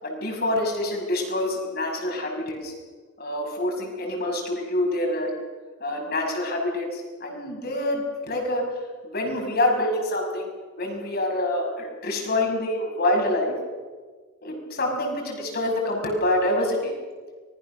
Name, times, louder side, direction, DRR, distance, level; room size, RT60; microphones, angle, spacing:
voice 1, 0.0-2.7 3.2-5.3 5.8-8.6 9.0-10.5 10.8-13.5 14.4-16.9, left 1 dB, 45° left, 1 dB, 6.0 m, -26 dB
25.0 x 20.5 x 6.7 m, 1.4 s
head